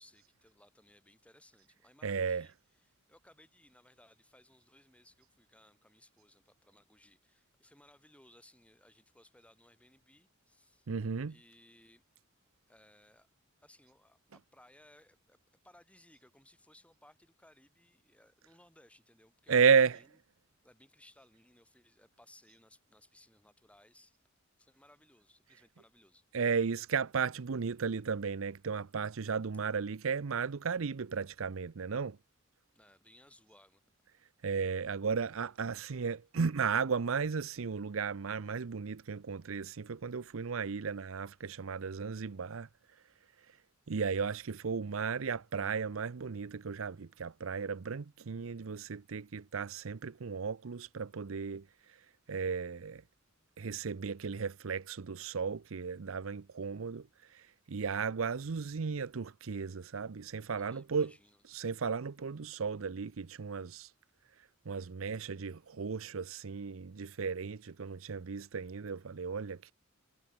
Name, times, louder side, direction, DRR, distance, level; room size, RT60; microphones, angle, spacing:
voice 1, 0.0-10.9 11.3-12.0 12.7-13.3 13.6-15.4 15.6-20.2 20.6-24.2 24.6-26.2 32.7-33.8 60.6-61.4, left 1 dB, 5° left, 6.3 m, -63 dB
voice 2, 2.0-2.4 10.9-11.3 19.5-20.0 26.3-32.2 34.4-42.7 43.9-51.6 52.3-53.0 53.6-57.1 57.3-61.1 61.5-63.9 64.7-69.7, right 6 dB, 70° right, 0.6 m, -34 dB
head